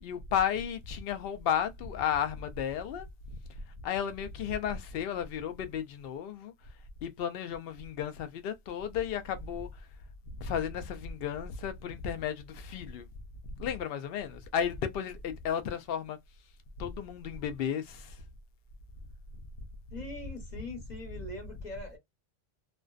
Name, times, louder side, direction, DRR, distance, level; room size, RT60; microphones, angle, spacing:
voice 1, 0.0-3.1 3.8-6.5 7.0-9.7 10.4-13.1 13.6-16.2 16.8-18.2, left 8 dB, 70° left, 0.7 m, -33 dB
voice 2, 19.9-22.0, left 2 dB, 45° left, 1.1 m, -42 dB
2.4 x 2.2 x 2.3 m
omnidirectional pair, 1.1 m